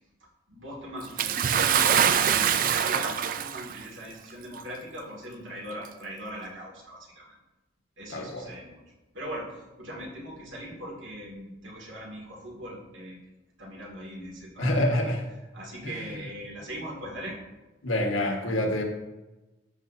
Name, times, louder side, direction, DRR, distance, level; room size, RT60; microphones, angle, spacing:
voice 1, 0.5-7.4 8.0-8.8 9.1-13.2 13.6-15.1 15.5-17.4, equal, 70° right, -3 dB, 2.5 m, -40 dB
Bathtub (filling or washing) / Splash splatter, 1.2-3.8 4.7-4.8 5.8-5.9, right 8 dB, 45° right, 0.3 m, -24 dB
voice 2, 8.1-8.5 14.6-15.2 15.8-16.2 17.8-18.8, left 1 dB, 85° left, 2 dB, 1.5 m, -27 dB
12.5 x 6.2 x 2.7 m, 1.1 s
head